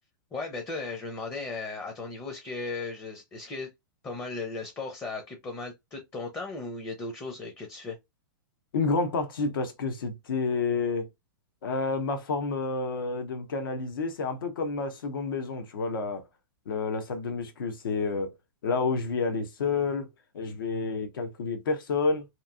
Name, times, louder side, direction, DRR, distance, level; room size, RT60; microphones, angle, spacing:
voice 1, 0.3-3.7 4.0-8.0, left 3 dB, 20° left, 0.6 m, -36 dB
voice 2, 8.7-11.1 11.6-16.2 16.7-18.3 18.6-20.1 20.3-22.3, left 4 dB, 80° left, 0.8 m, -29 dB
2.9 x 2.6 x 2.3 m
hypercardioid pair, 140°, 11 cm